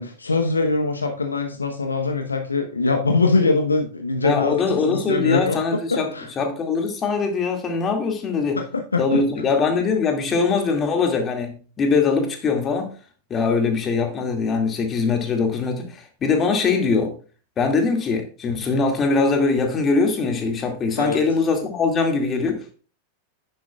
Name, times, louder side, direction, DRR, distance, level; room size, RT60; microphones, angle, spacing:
voice 1, 0.0-5.6 6.1-6.3 8.9-9.5 21.0-21.2, left 3 dB, 80° left, 1.0 m, -22 dB
voice 2, 4.2-6.1 6.4-8.6 9.0-12.9 13.3-17.2 17.6-22.6, left 4 dB, 25° left, 2.3 m, -22 dB
10.5 x 9.9 x 2.4 m
figure-of-eight pair, 90°, 0 cm